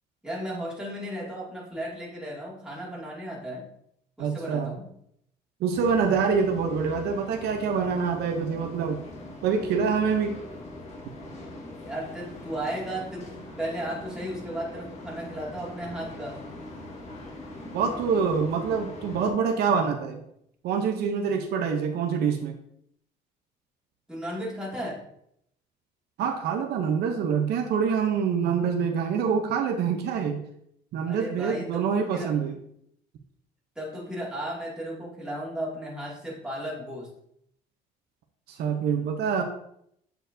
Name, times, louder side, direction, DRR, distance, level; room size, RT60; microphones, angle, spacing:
voice 1, 0.2-3.6 4.2-4.9 11.8-16.4 24.1-25.1 31.1-32.3 33.8-37.1, equal, 5° right, -5 dB, 2.3 m, -35 dB
voice 2, 4.2-4.7 5.6-9.0 9.4-10.3 17.7-20.2 20.6-22.5 26.2-30.4 30.9-32.6 38.5-39.4, right 6 dB, 75° right, 4 dB, 0.7 m, -26 dB
sound 1, 5.7-19.3, left 1 dB, 40° left, 1.5 m, -42 dB
7.7 x 4.5 x 2.7 m, 0.73 s
cardioid pair, 110°, 17 cm